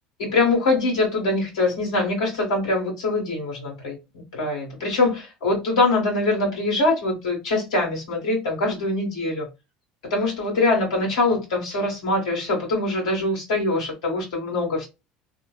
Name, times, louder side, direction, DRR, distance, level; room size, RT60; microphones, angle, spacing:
voice 1, 0.2-4.0 4.3-9.5 10.1-14.9, left 2 dB, 90° left, 1.6 m, -23 dB
2.8 x 2.0 x 2.3 m
supercardioid pair, 95°, 3 cm